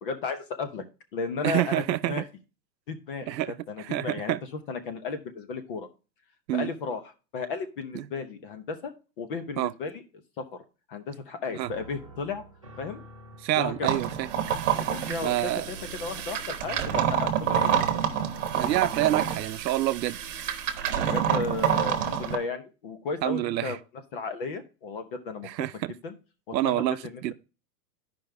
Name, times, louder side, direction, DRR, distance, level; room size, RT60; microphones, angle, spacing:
voice 1, 0.0-0.8 1.1-2.2 2.9-3.3 3.7-4.4 4.7-5.9 6.5-7.0 7.3-8.9 9.2-10.0 10.4-10.6 10.9-12.4 12.8-13.0 13.5-14.0 14.9-17.9 21.0-23.8 24.1-25.5 26.0-26.1 26.5-27.1, left 4 dB, 35° left, 0.9 m, -34 dB
voice 2, 1.4-2.2 3.3-4.4 6.5-6.7 7.9-8.1 9.6-9.7 11.5-11.7 13.4-14.3 15.2-15.7 18.5-20.2 23.2-23.8 25.4-25.9 26.5-27.3, right 14 dB, 85° right, 0.7 m, -27 dB
sound 1, 11.6-19.7, right 1 dB, 25° right, 0.3 m, -48 dB
sound 2, 13.8-22.4, right 8 dB, 45° right, 1.2 m, -28 dB
12.0 x 5.3 x 3.4 m
supercardioid pair, 175°, 50 cm